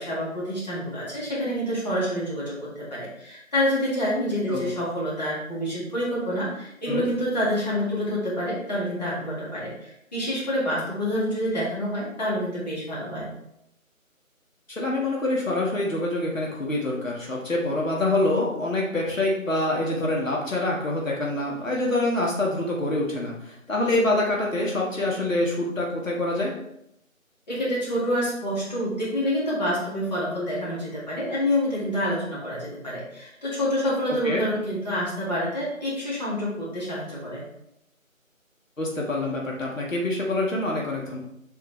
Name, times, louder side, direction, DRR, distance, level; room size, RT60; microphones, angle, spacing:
voice 1, 0.0-13.3 27.5-37.4, equal, 30° left, -7 dB, 2.1 m, -27 dB
voice 2, 14.7-26.6 34.2-34.4 38.8-41.2, left 2 dB, 65° left, -3 dB, 1.8 m, -26 dB
7.3 x 4.9 x 3.2 m, 0.79 s
figure-of-eight pair, 165°, 41 cm